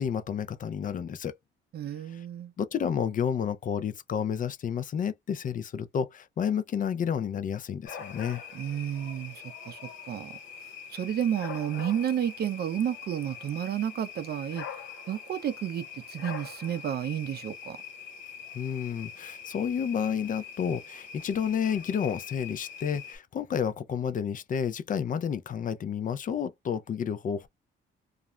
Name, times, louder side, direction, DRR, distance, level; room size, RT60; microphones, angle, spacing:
voice 1, 0.0-1.4 2.1-2.2 2.6-8.4 18.5-27.5, left 7 dB, 45° left, 0.4 m, -30 dB
voice 2, 1.7-2.5 8.5-10.4 10.9-14.7 15.1-17.8, right 10 dB, 55° right, 0.4 m, -31 dB
sound 1, 7.9-23.2, left 6 dB, 75° left, 1.1 m, -43 dB
2.4 x 2.0 x 3.0 m
cardioid pair, 90°, 20 cm